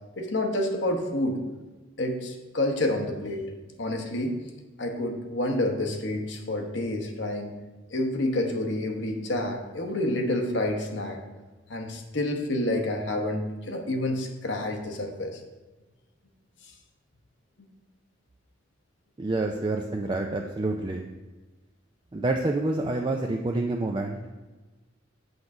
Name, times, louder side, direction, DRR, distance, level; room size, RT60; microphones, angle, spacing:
voice 1, 0.2-1.4 2.0-3.5 3.8-4.4 4.8-7.5 7.9-11.2 11.7-15.4 20.2-20.3, left 1 dB, 65° left, 3 dB, 1.1 m, -28 dB
voice 2, 19.2-21.1 22.1-24.3, right 2 dB, 25° right, 2 dB, 0.4 m, -28 dB
8.0 x 3.9 x 5.9 m, 1.2 s
head